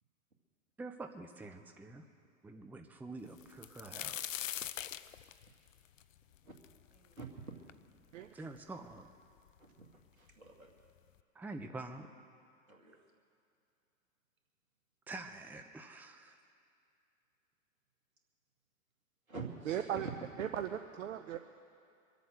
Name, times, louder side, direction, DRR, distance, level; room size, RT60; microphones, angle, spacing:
voice 1, 0.8-2.0 2.4-4.2 8.3-9.1 11.3-12.1 15.1-16.4, right 2 dB, 5° right, 6 dB, 0.7 m, -46 dB
sound 1, 3.4-7.2 7.7-7.8 8.6-8.7 8.9-9.6 10.5-10.6 11.0-11.2, left 11 dB, 70° left, 0.6 m, -42 dB
voice 2, 6.9-7.3 8.4-8.5 9.6-9.9 10.2-10.7 12.7-13.0 19.3-20.1, right 4 dB, 85° right, 1 dB, 2.3 m, -47 dB
voice 3, 19.7-20.1 20.4-21.4, right 10 dB, 65° right, 7 dB, 0.8 m, -37 dB
24.5 x 8.3 x 6.5 m, 2.5 s
figure-of-eight pair, 95°, 41 cm